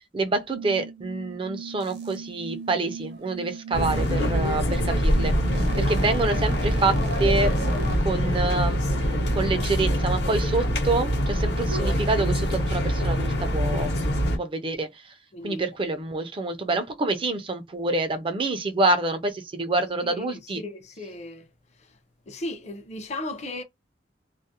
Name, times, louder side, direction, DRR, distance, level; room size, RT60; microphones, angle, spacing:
voice 1, 0.1-5.3 5.8-7.5 8.0-14.9 15.4-20.6, right 3 dB, 30° right, 0.4 m, -27 dB
sound 1, 0.5-7.6, right 5 dB, 90° right, 0.5 m, -40 dB
sound 2, 1.8-2.2 3.9-4.1 5.0-8.0, right 1 dB, 65° right, 0.8 m, -33 dB
sound 3, 3.7-14.4, equal, 70° left, 0.8 m, -24 dB
voice 2, 15.3-15.7 20.0-21.5 22.3-23.6, left 1 dB, 40° left, 0.5 m, -36 dB
2.3 x 2.0 x 2.7 m
head